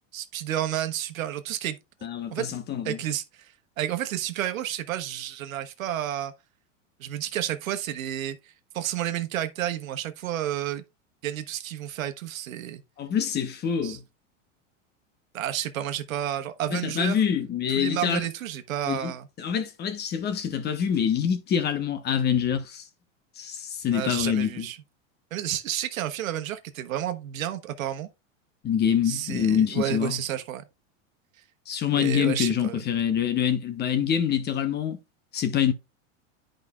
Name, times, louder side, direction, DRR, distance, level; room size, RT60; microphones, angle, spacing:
voice 1, 0.1-1.8 2.3-2.5 2.8-6.3 7.0-8.4 8.7-10.8 11.2-12.8 13.8-14.0 15.3-17.2 17.7-19.3 23.9-24.8 25.3-28.1 29.1-30.7 31.9-32.8, right 11 dB, 90° right, 1.1 m, -31 dB
voice 2, 2.0-3.0 13.0-14.0 16.7-18.3 18.9-22.8 23.4-24.7 28.6-30.2 31.7-35.0 35.3-35.7, left 8 dB, 25° left, 0.9 m, -26 dB
10.5 x 5.1 x 2.3 m
supercardioid pair, 130°, 40 cm